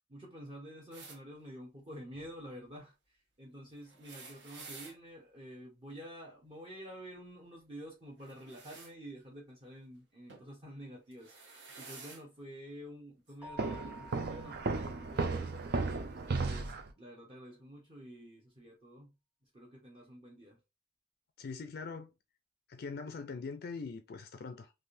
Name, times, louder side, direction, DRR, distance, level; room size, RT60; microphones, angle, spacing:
voice 1, 0.1-2.9 3.4-11.3 11.8-15.7 16.3-19.1 19.5-20.6, equal, 30° right, 0.9 m, -49 dB
sound 1, 0.9-1.2 3.8-5.0 8.2-8.9 10.3-10.5 11.1-12.2 13.3-13.4 14.6-14.7, right 4 dB, 75° right, 1.0 m, -51 dB
Keyboard (musical), 13.4-15.9, right 1 dB, 5° right, 1.0 m, -52 dB
Walk footsteps, 13.6-16.9, right 3 dB, 60° right, 0.4 m, -34 dB
voice 2, 21.4-22.1 22.7-24.7, left 4 dB, 55° left, 0.4 m, -42 dB
3.4 x 2.5 x 2.6 m
head